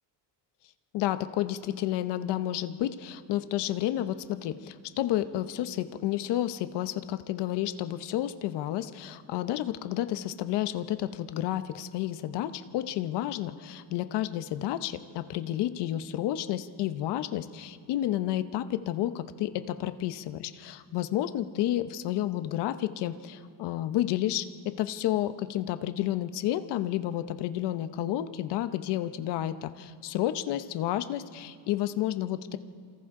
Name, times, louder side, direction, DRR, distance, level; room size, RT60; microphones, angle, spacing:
voice 1, 0.9-32.6, left 13 dB, 65° left, 11 dB, 0.9 m, -31 dB
29.0 x 27.5 x 3.8 m, 2.3 s
cardioid pair, 170°, 43 cm